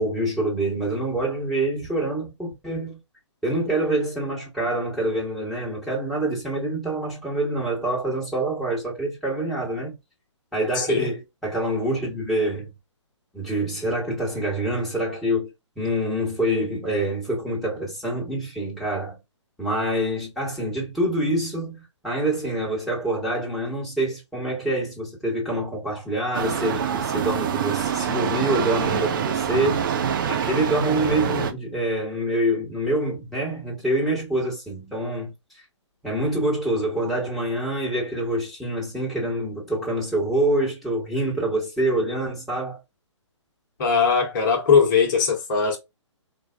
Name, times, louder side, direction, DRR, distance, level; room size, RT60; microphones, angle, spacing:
voice 1, 0.0-3.0 3.4-10.0 10.5-12.7 13.3-15.5 15.8-19.2 19.6-30.0 30.3-35.3 36.0-42.8, right 1 dB, ahead, 1.3 m, -26 dB
voice 2, 10.7-11.1 43.8-45.8, left 6 dB, 40° left, 1.0 m, -20 dB
sound 1, 26.3-31.5, right 8 dB, 45° right, 0.5 m, -25 dB
4.0 x 2.2 x 2.3 m
figure-of-eight pair, 130°, 16 cm